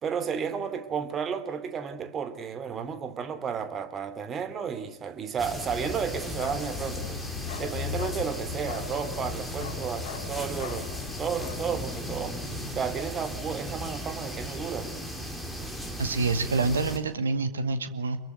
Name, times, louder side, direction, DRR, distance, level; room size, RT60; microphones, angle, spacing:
voice 1, 0.0-7.2 7.6-10.9 11.2-12.4 12.7-14.9, right 7 dB, 25° right, 2.8 m, -32 dB
sound 1, 5.4-17.0, equal, ahead, 4.3 m, -37 dB
Bark, 5.7-12.7, left 12 dB, 55° left, 1.4 m, -39 dB
voice 2, 16.0-18.2, right 3 dB, 70° right, 2.0 m, -27 dB
28.0 x 22.5 x 9.3 m
figure-of-eight pair, 90°, 0 cm